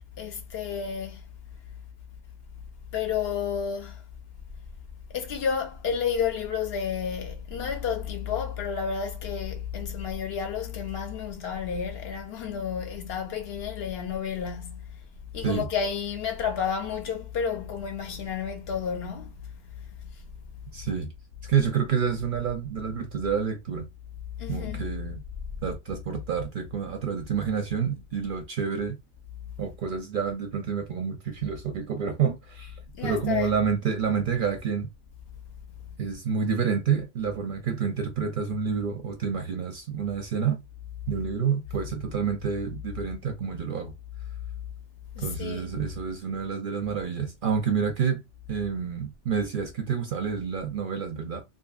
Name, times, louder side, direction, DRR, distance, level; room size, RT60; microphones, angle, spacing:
voice 1, 0.2-1.2 2.9-4.0 5.1-14.8 15.3-19.5 24.4-24.8 32.9-33.5 45.2-45.7, left 7 dB, 65° left, 0.8 m, -31 dB
voice 2, 20.7-21.1 21.4-23.9 24.5-25.2 25.6-29.0 29.6-34.9 36.0-40.6 41.1-43.9 45.2-48.2 48.5-51.4, right 6 dB, 60° right, 0.6 m, -28 dB
2.7 x 2.6 x 2.3 m
omnidirectional pair, 1.2 m